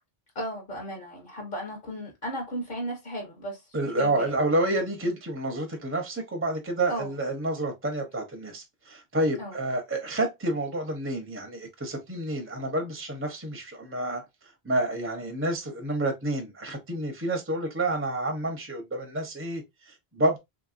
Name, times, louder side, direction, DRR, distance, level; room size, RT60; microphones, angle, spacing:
voice 1, 0.3-4.4 6.9-7.1 9.4-9.6, right 1 dB, 55° left, 1.0 m, -35 dB
voice 2, 3.7-14.2 14.6-20.4, right 1 dB, 15° right, 0.5 m, -29 dB
3.0 x 2.9 x 2.5 m
omnidirectional pair, 1.1 m